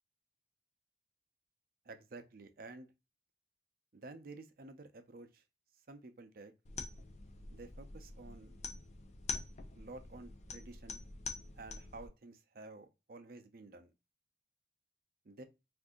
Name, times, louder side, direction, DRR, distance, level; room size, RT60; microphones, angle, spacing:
voice 1, 1.8-2.9 3.9-5.4 5.9-6.5 7.5-8.6 9.8-11.0 11.5-13.9 15.2-15.4, right 3 dB, 55° right, 0.5 m, -51 dB
sound 1, 6.7-12.1, left 4 dB, 40° left, 0.4 m, -45 dB
2.7 x 2.5 x 3.5 m
head